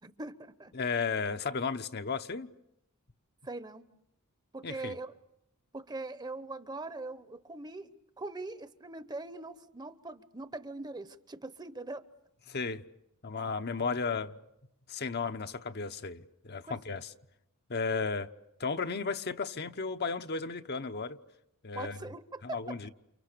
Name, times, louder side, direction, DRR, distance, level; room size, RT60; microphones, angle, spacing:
voice 1, 0.0-0.7 3.4-3.9 4.5-5.2 5.7-12.0 16.7-16.8 21.7-22.9, right 2 dB, 20° right, 1.0 m, -42 dB
voice 2, 0.7-2.5 4.6-4.9 12.5-12.8 13.2-14.4 14.9-17.1 17.7-18.3 18.6-21.2 21.6-22.0 22.4-22.9, left 5 dB, 50° left, 1.0 m, -34 dB
30.0 x 29.0 x 6.8 m
head